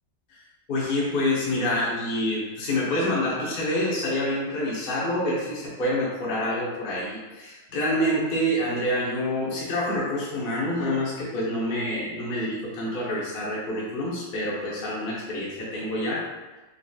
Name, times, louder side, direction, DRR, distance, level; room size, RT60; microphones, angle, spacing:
voice 1, 0.7-16.2, left 1 dB, 40° left, -6 dB, 0.9 m, -27 dB
5.0 x 2.9 x 2.3 m, 1.2 s
omnidirectional pair, 1.6 m